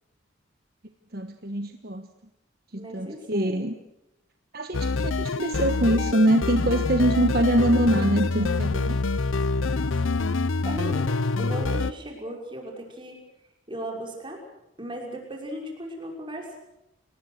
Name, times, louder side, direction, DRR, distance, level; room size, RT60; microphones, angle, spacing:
voice 1, 1.1-2.1 2.7-3.7 4.5-9.0, right 1 dB, 50° right, 7 dB, 1.3 m, -24 dB
voice 2, 2.7-3.6 6.7-6.9 8.4-8.7 10.0-10.3 10.6-11.1 11.4-13.2 13.7-14.4 14.8-16.6, right 1 dB, 25° right, 0 dB, 5.9 m, -37 dB
sound 1, 4.7-11.9, left 3 dB, 85° left, 0.8 m, -26 dB
30.0 x 19.5 x 6.5 m, 0.88 s
head